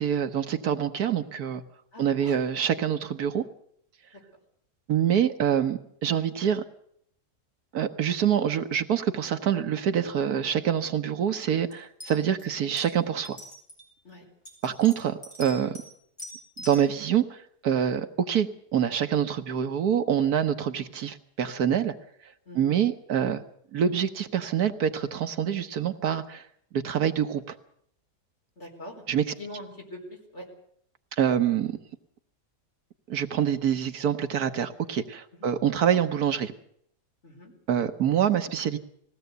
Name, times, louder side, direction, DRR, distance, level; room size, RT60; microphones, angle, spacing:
voice 1, 0.0-1.6 2.0-3.4 4.9-6.6 7.7-13.4 14.6-15.8 16.6-21.9 22.5-23.4 23.7-26.4 26.7-27.5 29.1-29.3 31.1-31.8 33.1-36.5 37.7-38.8, right 9 dB, 75° right, 9 dB, 1.6 m, -26 dB
voice 2, 1.9-2.3 14.0-14.2 22.5-22.8 28.6-29.0 29.4-30.0 30.3-30.4 35.3-35.5 37.2-37.5, left 1 dB, 45° left, 1 dB, 4.7 m, -43 dB
sound 1, 11.7-11.8 12.0-12.4 12.8-12.9 13.2-13.8 14.5-15.9 16.2-16.8, equal, 15° left, 6.5 m, -42 dB
20.5 x 16.5 x 8.1 m, 0.69 s
omnidirectional pair, 1.7 m